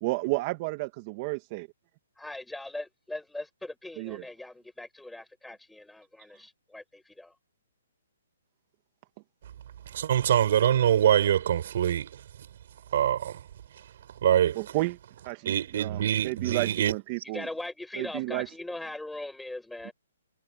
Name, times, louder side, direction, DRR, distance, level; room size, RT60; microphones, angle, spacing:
voice 1, 0.0-0.9 1.2-1.7 4.0-4.2 14.6-15.0 15.2-17.5 18.0-18.5, right 21 dB, 30° right, 1.7 m, -31 dB
voice 2, 2.2-7.3 17.3-19.9, left 2 dB, ahead, 7.7 m, -40 dB
voice 3, 9.9-12.2 12.9-13.4 14.2-14.6 15.5-16.9, right 10 dB, 50° right, 5.3 m, -24 dB
hypercardioid pair, 160°, 0 cm